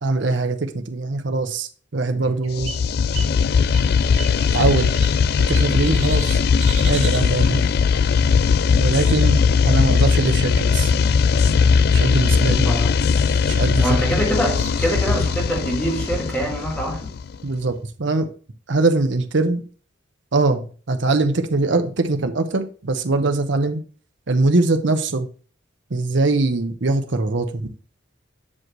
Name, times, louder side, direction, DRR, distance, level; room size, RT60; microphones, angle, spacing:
voice 1, 0.0-2.7 4.5-4.9 5.4-6.4 6.8-7.6 8.8-10.9 11.9-12.7 13.5-14.0 17.4-18.3 18.7-19.6 20.3-23.8 24.3-25.3 25.9-27.6, right 3 dB, 65° right, 0.8 m, -22 dB
sound 1, 2.2-3.4 3.7-7.3 8.4-9.9 10.7-11.0 11.3-11.9 12.1-12.9 13.3-13.6 14.6-15.1, right 7 dB, 80° right, 1.6 m, -38 dB
sound 2, 2.5-17.3, left 5 dB, 50° left, 0.3 m, -19 dB
voice 2, 12.6-13.0 13.8-17.1, equal, 5° left, 1.6 m, -24 dB
7.5 x 6.2 x 3.1 m
head